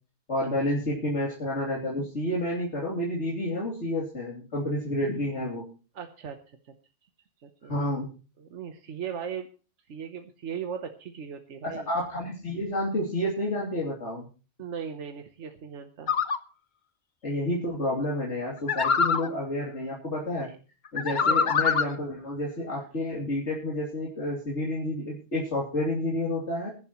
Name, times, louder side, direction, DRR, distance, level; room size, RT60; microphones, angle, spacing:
voice 1, 0.3-5.6 7.7-8.1 11.6-14.3 17.2-20.5 20.9-26.7, left 1 dB, 80° left, -4 dB, 3.3 m, -30 dB
voice 2, 5.9-6.4 7.4-8.0 8.4-9.5 9.9-11.9 14.6-16.1 20.4-20.6 21.1-21.4, right 7 dB, 85° right, 6 dB, 1.3 m, -38 dB
sound 1, 16.1-16.4 18.7-19.3 21.0-21.9, left 6 dB, 45° left, 0.9 m, -24 dB
22.0 x 11.0 x 3.0 m, 0.35 s
omnidirectional pair, 1.2 m